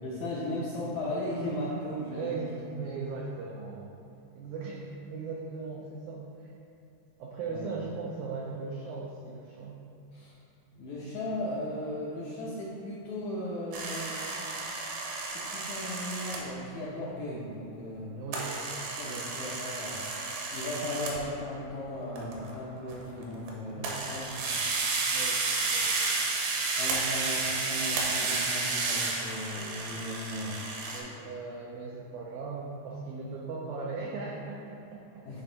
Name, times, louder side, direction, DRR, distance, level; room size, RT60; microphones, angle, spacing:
voice 1, 0.0-2.4 7.5-7.8 10.1-10.3 10.7-14.2 15.3-18.1 19.0-20.0 20.5-24.6 26.8-30.6 35.2-35.4, left 1 dB, 75° left, -6 dB, 1.7 m, -36 dB
voice 2, 2.1-3.9 4.3-6.5 7.2-9.8 18.1-18.6 19.0-19.3 23.8-24.1 25.1-25.9 30.9-35.4, right 4 dB, 90° right, -3 dB, 1.7 m, -38 dB
sound 1, 13.7-16.4 18.3-21.2 22.2-22.5 22.9-23.5 23.8-31.0, right 3 dB, 70° right, 2.2 m, -32 dB
10.0 x 3.4 x 3.9 m, 2.7 s
omnidirectional pair, 4.2 m